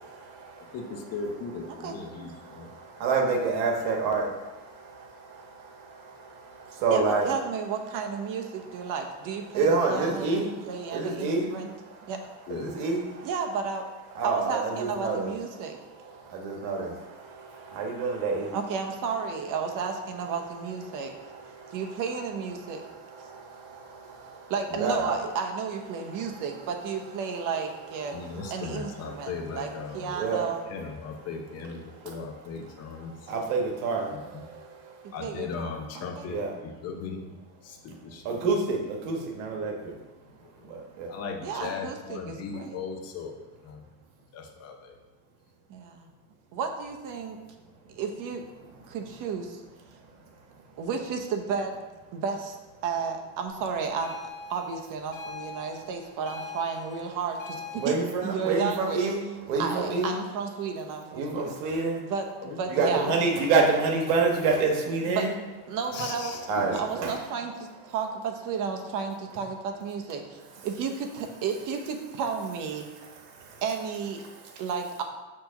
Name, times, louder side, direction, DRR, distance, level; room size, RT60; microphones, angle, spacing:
voice 1, 0.0-0.8 1.7-7.3 8.8-8.9 9.5-12.1 12.5-13.3 14.1-15.3 15.7-18.6 20.9-22.0 22.6-24.5 24.8-25.2 25.9-26.6 27.3-27.4 28.0-28.8 29.1-29.3 29.9-30.5 31.9-32.2 32.6-35.1 36.2-36.5 38.2-40.0 40.6-41.2 48.6-48.9 57.7-60.1 61.1-62.1 62.7-65.3 66.5-67.2 73.3-73.6 74.4-74.5, right 4 dB, 80° right, 2 dB, 1.3 m, -29 dB
voice 2, 0.7-2.7 12.5-12.8 24.7-25.1 28.1-30.1 30.7-33.3 34.1-34.4 35.1-37.2 37.6-38.4 40.4-40.8 41.1-43.8 44.3-45.0 62.4-63.2 65.9-66.7, left 5 dB, 35° left, 3 dB, 0.6 m, -38 dB
voice 3, 6.9-11.7 12.1-12.2 13.2-13.9 14.2-15.8 18.5-21.1 21.7-22.8 24.5-28.1 28.5-30.6 35.0-35.7 35.9-36.3 41.4-42.8 45.7-46.1 46.5-47.4 47.9-48.4 48.9-49.6 50.8-51.7 52.1-52.6 52.8-54.2 54.5-58.0 58.2-59.0 59.6-61.6 62.1-63.1 65.1-65.3 65.7-66.3 66.7-72.9 73.6-74.2 74.6-75.0, right 5 dB, 45° right, 4 dB, 0.8 m, -32 dB
sound 1, 54.0-57.9, left 3 dB, 55° left, 1.5 m, -42 dB
6.1 x 3.0 x 5.7 m, 1.1 s
cardioid pair, 145°, 44 cm